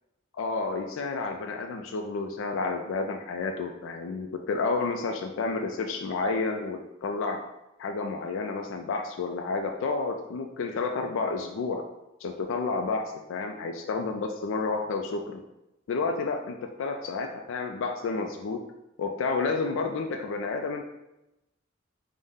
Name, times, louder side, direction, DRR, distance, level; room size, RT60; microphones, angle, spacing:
voice 1, 0.3-7.4 7.8-11.8 12.2-15.4 15.9-18.6 19.0-20.8, left 4 dB, 65° left, 4 dB, 0.3 m, -30 dB
5.4 x 2.1 x 3.5 m, 0.93 s
head